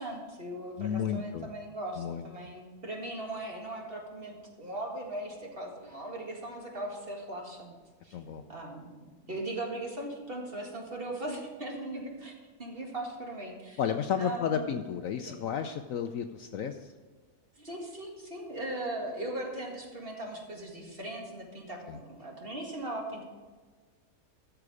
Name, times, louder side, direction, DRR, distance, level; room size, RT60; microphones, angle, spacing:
voice 1, 0.0-7.7 8.0-8.2 8.5-12.3 12.6-13.8 14.2-14.7 15.3-15.4 17.6-23.2, right 1 dB, 35° right, 0 dB, 2.1 m, -39 dB
voice 2, 0.8-1.5 2.0-2.3 8.1-8.4 13.8-16.9 21.9-22.0, left 8 dB, 70° left, 7 dB, 0.9 m, -32 dB
14.0 x 6.9 x 4.9 m, 1.4 s
omnidirectional pair, 1.7 m